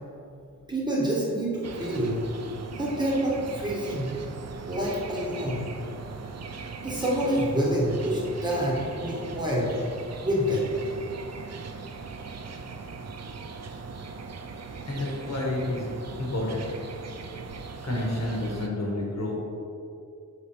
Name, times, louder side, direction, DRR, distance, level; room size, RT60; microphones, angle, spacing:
voice 1, 0.7-2.2 2.7-4.1 4.7-5.7 6.8-9.8 10.2-10.7, equal, 15° right, -6 dB, 1.1 m, -27 dB
sound 1, 1.6-18.7, right 4 dB, 55° right, 0.5 m, -39 dB
voice 2, 14.9-16.7 17.8-19.4, left 1 dB, 55° left, -3 dB, 1.4 m, -30 dB
6.4 x 5.1 x 4.2 m, 2.6 s
wide cardioid pair, 170°, 33 cm